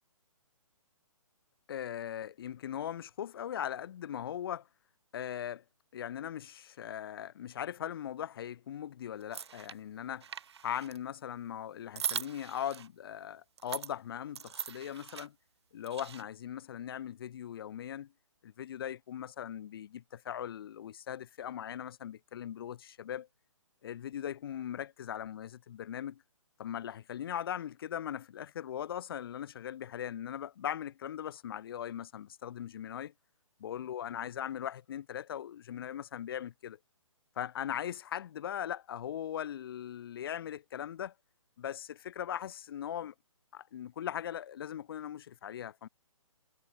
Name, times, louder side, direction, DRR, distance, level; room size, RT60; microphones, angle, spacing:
voice 1, 1.7-4.7 5.1-5.6 5.9-10.3 10.6-15.4 15.7-18.1 18.4-23.3 23.8-26.2 26.6-33.1 33.6-36.8 37.4-41.1 41.6-43.1 43.5-45.9, left 10 dB, 45° left, 4.0 m, -39 dB
sound 1, 9.2-9.7 10.1-11.0 12.0-12.9 13.6-13.9 14.4-15.3 15.8-16.2, right 8 dB, 50° right, 3.1 m, -40 dB
figure-of-eight pair, 140°, 17 cm